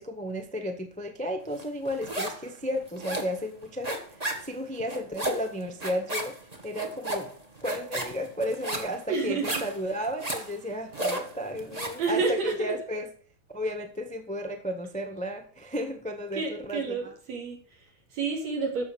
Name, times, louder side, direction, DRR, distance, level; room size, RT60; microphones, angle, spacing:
voice 1, 0.0-4.0 4.4-6.3 6.6-7.3 7.6-13.1 13.5-17.0, equal, 10° left, 5 dB, 0.4 m, -33 dB
sound 1, 1.6-2.5 2.7-12.0, right 1 dB, 25° right, 0.9 m, -34 dB
voice 2, 9.1-9.5 12.0-12.8 16.3-18.8, right 4 dB, 65° right, 1 dB, 4.3 m, -30 dB
13.5 x 5.5 x 7.1 m, 0.44 s
omnidirectional pair, 3.4 m